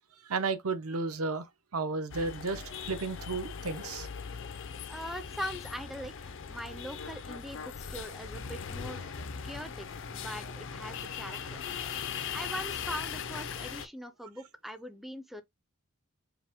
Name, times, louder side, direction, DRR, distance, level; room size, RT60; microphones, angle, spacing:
voice 1, 0.3-4.1, right 3 dB, 80° right, 0.8 m, -33 dB
sound 1, 2.1-13.9, left 6 dB, 60° left, 0.6 m, -39 dB
voice 2, 4.9-9.0 9.4-9.9 10.1-11.6 12.3-15.4, equal, ahead, 0.4 m, -41 dB
4.8 x 2.1 x 3.6 m
head